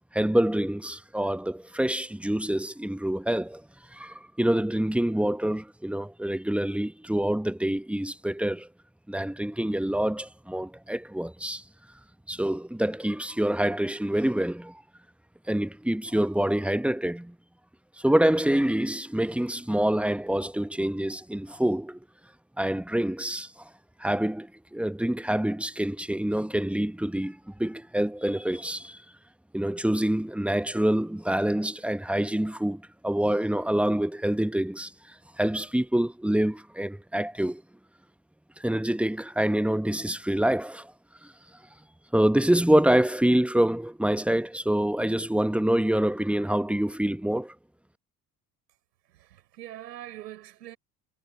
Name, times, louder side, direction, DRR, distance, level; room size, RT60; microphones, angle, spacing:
voice 1, 0.1-3.6 3.9-8.7 9.1-11.6 12.3-14.8 15.5-17.3 18.0-22.0 22.6-23.7 24.0-29.0 29.5-37.6 38.6-40.9 41.2-41.3 42.1-47.5, right 1 dB, 5° right, 1.0 m, -26 dB
voice 2, 49.0-50.8, right 13 dB, 85° right, 7.2 m, -43 dB
hypercardioid pair, 60°, 48 cm